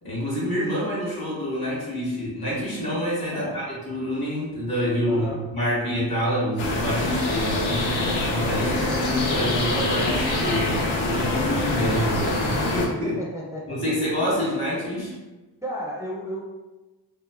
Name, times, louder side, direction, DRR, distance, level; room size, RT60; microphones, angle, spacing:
voice 1, 0.0-13.2 13.7-15.1, equal, 50° left, -6 dB, 1.5 m, -27 dB
voice 2, 5.1-5.4 13.0-14.4 15.6-16.4, equal, 5° right, -4 dB, 0.5 m, -34 dB
sound 1, 6.6-12.9, left 2 dB, 80° left, 0.6 m, -25 dB
3.0 x 2.0 x 2.3 m, 1.2 s
supercardioid pair, 40°, 48 cm